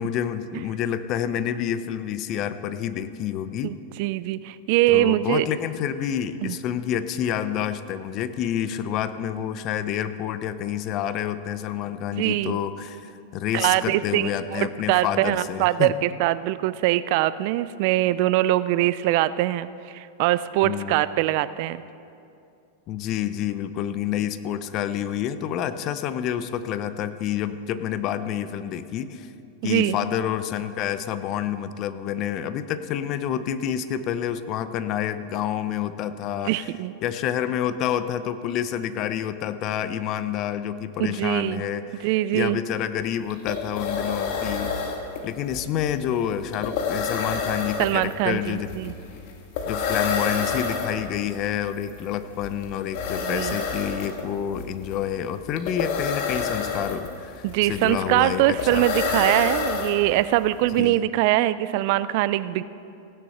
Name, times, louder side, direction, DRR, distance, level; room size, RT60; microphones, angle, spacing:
voice 1, 0.0-3.8 4.9-15.9 20.6-21.1 22.9-29.3 29.6-36.7 37.0-44.7 45.2-48.7 49.7-58.8 60.8-61.0, left 10 dB, 45° left, 12 dB, 0.6 m, -28 dB
voice 2, 3.6-5.5 6.4-6.5 12.1-12.6 13.5-19.7 19.9-21.8 29.6-30.0 36.4-36.9 41.0-41.6 42.0-42.6 47.8-48.9 53.2-53.6 57.4-62.6, right 15 dB, 55° right, 16 dB, 0.4 m, -23 dB
sound 1, 43.0-43.1 43.3-60.4, left 5 dB, 60° left, 1.8 m, -29 dB
16.0 x 10.0 x 4.3 m, 2.6 s
hypercardioid pair, 120°, 0 cm